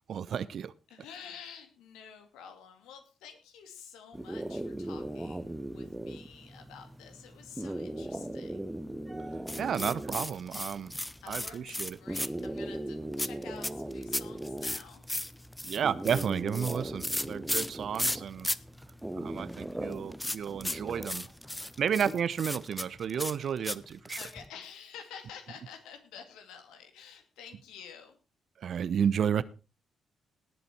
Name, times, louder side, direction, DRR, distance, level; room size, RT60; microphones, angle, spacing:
voice 1, 0.1-0.7 9.5-10.9 11.3-12.0 15.6-18.5 19.2-21.3 21.6-24.2 28.6-29.4, right 8 dB, 55° right, 18 dB, 0.8 m, -32 dB
voice 2, 0.9-8.8 10.5-10.6 11.2-15.1 24.2-28.2, left 7 dB, 70° left, 7 dB, 2.3 m, -50 dB
sound 1, 4.1-22.1, right 1 dB, 10° right, 1.4 m, -40 dB
sound 2, 9.5-12.6 13.1-18.6 18.8-18.9 19.3-24.5, left 1 dB, 10° left, 0.9 m, -35 dB
18.0 x 7.9 x 4.6 m, 0.33 s
hypercardioid pair, 40°, 0 cm